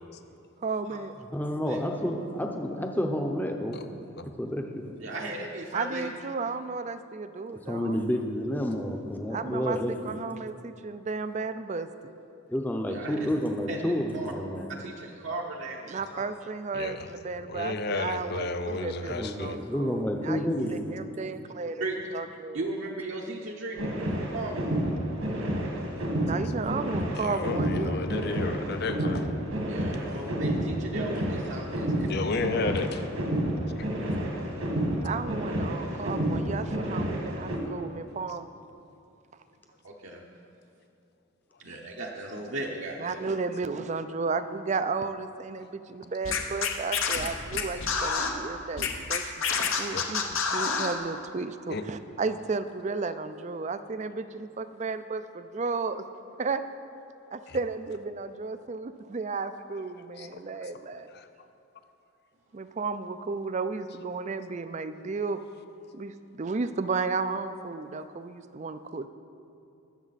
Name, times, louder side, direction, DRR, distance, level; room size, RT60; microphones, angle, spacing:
voice 1, 0.6-1.1 5.7-8.0 9.3-9.8 10.1-11.9 15.9-21.9 22.1-22.6 26.2-28.0 35.0-38.5 43.0-56.0 56.4-56.6 57.3-61.1 62.5-65.4 65.9-69.1, right 4 dB, 35° right, 11 dB, 0.4 m, -33 dB
voice 2, 1.3-3.9 4.2-4.9 7.7-10.2 12.5-14.7 19.0-21.0, equal, 10° left, 3 dB, 0.7 m, -30 dB
voice 3, 3.7-4.3 16.7-17.1 17.5-19.6 27.2-29.3 30.1-30.3 32.1-33.1 33.8-33.9 35.9-36.0 49.7-50.0 51.7-51.8 57.5-57.6 60.2-60.7 61.1-61.3, left 3 dB, 50° left, 9 dB, 0.6 m, -33 dB
voice 4, 5.0-6.1 12.9-13.3 13.7-14.3 14.7-15.9 16.1-16.2 21.8-21.9 22.5-24.7 29.7-32.3 39.8-40.2 41.6-43.3, right 2 dB, 60° right, -2 dB, 0.8 m, -36 dB
sound 1, 23.7-37.6, right 1 dB, 75° right, 1.7 m, -30 dB
Scratching (performance technique), 46.2-48.3 48.8-51.0, left 5 dB, 70° left, 1.0 m, -27 dB
20.0 x 7.2 x 4.1 m, 2.7 s
head